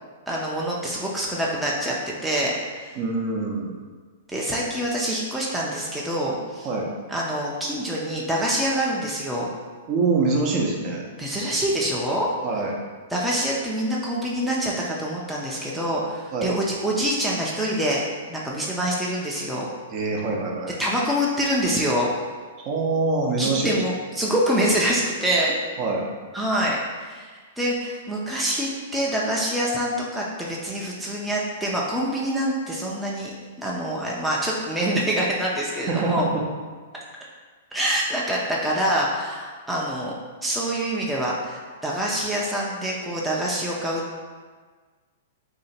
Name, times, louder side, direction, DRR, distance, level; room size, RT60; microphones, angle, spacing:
voice 1, 0.3-3.0 4.3-6.7 7.1-9.5 11.2-12.3 13.1-19.7 20.8-22.1 23.4-25.5 26.3-36.3 37.7-40.1 40.4-44.2, right 1 dB, 5° right, -5 dB, 0.6 m, -26 dB
voice 2, 3.0-3.8 6.6-6.9 9.9-11.1 12.4-12.7 16.3-16.6 19.9-20.8 22.6-23.8 25.8-26.1 35.9-36.5, right 3 dB, 40° right, -1 dB, 0.7 m, -24 dB
2.8 x 2.7 x 4.2 m, 1.5 s
hypercardioid pair, 120°, 0 cm